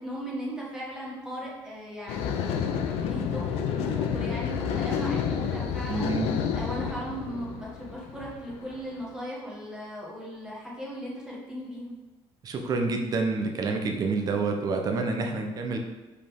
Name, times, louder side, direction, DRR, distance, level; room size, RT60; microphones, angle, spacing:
voice 1, 0.0-2.6 3.0-6.1 6.5-11.9, equal, 5° right, -5 dB, 1.7 m, -37 dB
sound 1, 2.1-9.0, left 7 dB, 85° left, 0.7 m, -30 dB
voice 2, 5.9-6.3 12.4-15.8, right 3 dB, 40° right, 3 dB, 0.9 m, -28 dB
5.4 x 4.3 x 5.4 m, 1.2 s
cardioid pair, 155°, 10 cm